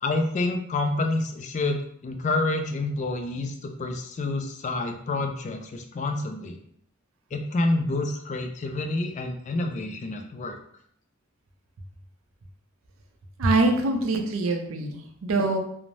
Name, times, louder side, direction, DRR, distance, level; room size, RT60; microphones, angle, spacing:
voice 1, 0.0-6.6 7.3-10.6, left 2 dB, 35° left, 5 dB, 0.3 m, -28 dB
voice 2, 13.4-15.6, right 2 dB, 80° right, 4 dB, 0.5 m, -24 dB
2.6 x 2.0 x 3.0 m, 0.66 s
head